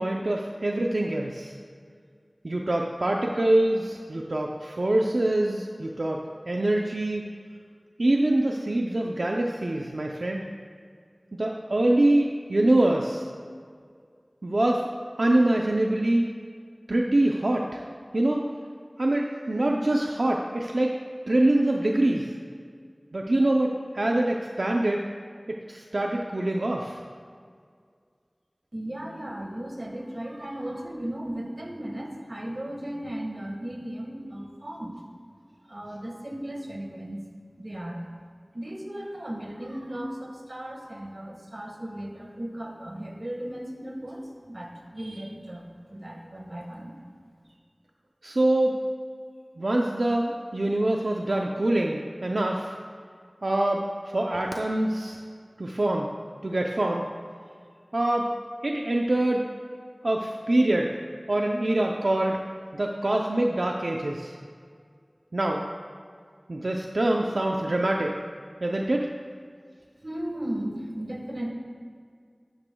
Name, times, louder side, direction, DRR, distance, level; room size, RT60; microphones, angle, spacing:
voice 1, 0.0-1.5 2.4-7.3 8.0-10.4 11.4-13.3 14.4-14.8 15.2-16.3 16.9-17.8 18.1-18.5 19.0-21.0 21.3-22.3 23.1-25.1 25.7-27.0 48.2-48.8 49.6-52.7 53.4-55.2 55.6-56.1 56.4-57.1 57.9-58.3 58.6-59.5 60.0-60.9 61.3-62.4 62.7-64.4 65.3-65.6 66.5-68.2 68.6-69.1, right 1 dB, 90° right, 0 dB, 0.6 m, -24 dB
voice 2, 28.7-35.0 35.4-37.2 37.6-38.0 38.5-44.2 44.5-46.9 70.0-71.5, right 1 dB, 60° right, 1 dB, 1.5 m, -36 dB
12.5 x 11.0 x 2.3 m, 2.1 s
wide cardioid pair, 45°, 0 cm